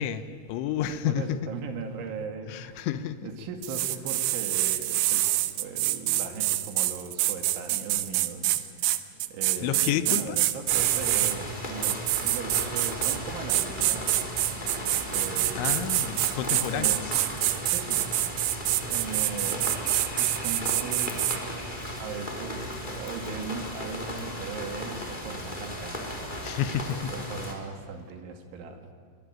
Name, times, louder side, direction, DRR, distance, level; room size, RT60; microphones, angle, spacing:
voice 1, 0.0-1.5 2.5-3.3 9.6-10.4 15.6-17.1 26.4-27.1, left 10 dB, 75° left, 12 dB, 3.3 m, -30 dB
voice 2, 0.9-2.9 3.2-14.2 15.1-15.9 16.6-17.1 17.6-18.1 18.9-19.7 20.2-21.4 22.0-26.0 26.9-28.9, right 4 dB, 75° right, 5 dB, 4.4 m, -38 dB
sound 1, 3.6-11.4 11.8-13.2 13.5-21.4, right 16 dB, 90° right, 3.5 m, -26 dB
sound 2, 10.7-27.6, equal, 10° left, 3.0 m, -36 dB
24.5 x 23.0 x 9.2 m, 2.3 s
omnidirectional pair, 5.7 m